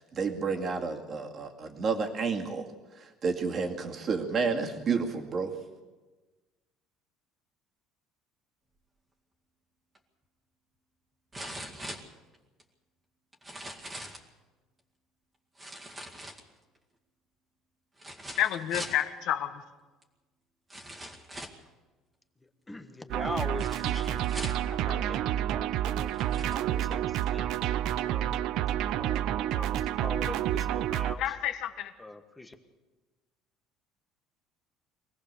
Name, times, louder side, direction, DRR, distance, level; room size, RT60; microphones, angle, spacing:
voice 1, 0.0-2.7 2.9-5.5, right 5 dB, 30° right, 2 dB, 2.3 m, -30 dB
sound 1, 9.9-10.0 11.3-12.6 13.3-14.3 15.6-16.8 18.0-19.0 20.0-20.1 20.7-21.7 23.6-24.7 25.5-25.6 26.0-26.6 27.2-27.3, right 1 dB, 10° right, 2.1 m, -42 dB
voice 2, 18.4-19.6 31.2-31.9, left 11 dB, 55° left, 8 dB, 1.5 m, -29 dB
voice 3, 22.7-24.3 24.7-27.5 28.0-28.4 28.8-31.2 32.0-32.5, left 2 dB, 10° left, 6 dB, 1.4 m, -42 dB
sound 2, 23.1-31.1, right 12 dB, 60° right, 0.6 m, -29 dB
24.5 x 18.0 x 6.9 m, 1.2 s
cardioid pair, 165°, 0 cm